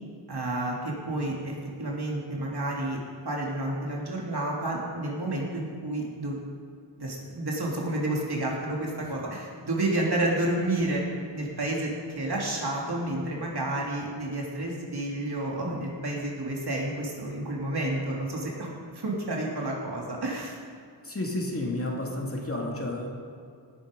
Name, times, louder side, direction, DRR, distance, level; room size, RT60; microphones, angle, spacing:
voice 1, 0.3-3.0 3.2-6.4 7.0-11.0 11.3-20.6, right 1 dB, 60° right, -3 dB, 3.1 m, -30 dB
voice 2, 21.0-23.1, left 1 dB, 30° left, -1 dB, 2.6 m, -31 dB
18.5 x 8.9 x 5.3 m, 2.3 s
wide cardioid pair, 80°, 44 cm